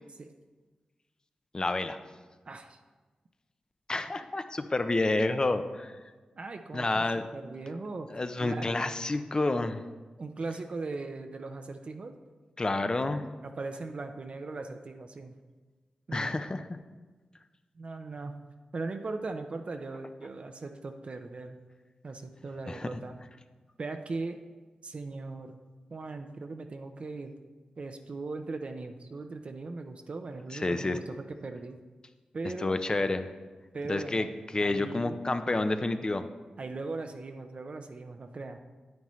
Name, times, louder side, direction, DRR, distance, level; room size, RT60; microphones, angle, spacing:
voice 1, 1.5-2.0 3.9-5.9 6.7-7.2 8.1-9.8 12.6-13.2 16.1-16.8 22.7-23.0 30.5-31.0 32.6-33.3 33.9-34.3 34.5-36.2, left 2 dB, 35° left, 9 dB, 0.6 m, -29 dB
voice 2, 2.5-2.8 6.4-8.1 8.4-8.7 10.2-12.1 13.4-15.3 16.1-16.4 17.8-18.3 18.7-21.6 22.0-23.2 23.8-24.4 24.8-25.6 25.9-27.3 27.8-31.8 32.3-32.8 33.7-34.3 34.6-35.2 36.6-38.6, right 3 dB, 55° right, 6 dB, 0.6 m, -39 dB
9.3 x 8.7 x 3.1 m, 1.3 s
cardioid pair, 65°, 2 cm